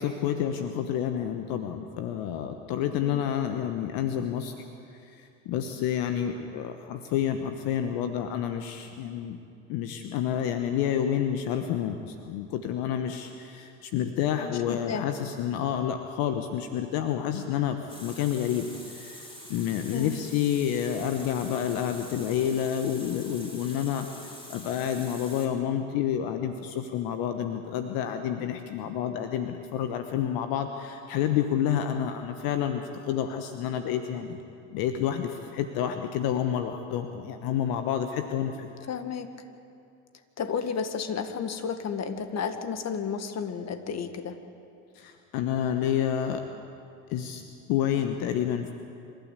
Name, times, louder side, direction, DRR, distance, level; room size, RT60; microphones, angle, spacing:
voice 1, 0.0-4.5 5.1-9.4 9.7-24.1 24.5-34.4 34.7-38.7 44.9-46.4 47.1-47.4 47.7-48.7, left 9 dB, 70° left, 7 dB, 1.2 m, -29 dB
voice 2, 14.4-15.1 19.9-20.2 38.9-39.3 40.4-44.4, left 6 dB, 45° left, 9 dB, 1.9 m, -32 dB
Water tap faucet, 17.9-25.5, equal, 15° left, 6.1 m, -45 dB
27.0 x 13.0 x 8.3 m, 2.6 s
hypercardioid pair, 65°, 38 cm